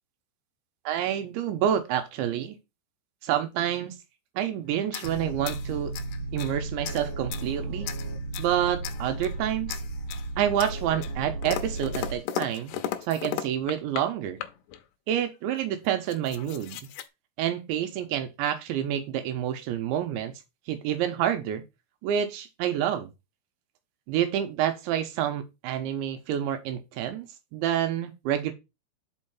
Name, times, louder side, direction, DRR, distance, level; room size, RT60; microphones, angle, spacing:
voice 1, 0.9-2.6 3.2-3.9 4.4-5.9 6.3-7.9 8.4-9.8 10.4-12.7 13.0-14.4 15.1-16.9 17.4-20.3 20.7-21.6 22.0-23.1 24.1-28.5, right 10 dB, 80° right, 3.1 m, -28 dB
sound 1, 4.8-6.5 6.8-7.5 7.8-8.5 8.8-9.4 9.7-10.3 10.6-14.1 14.4-14.8 15.5-15.6 15.8-17.1, left 11 dB, 80° left, 2.4 m, -36 dB
sound 2, 5.0-12.1, right 2 dB, 55° right, 2.3 m, -34 dB
5.6 x 5.5 x 5.7 m
omnidirectional pair, 5.6 m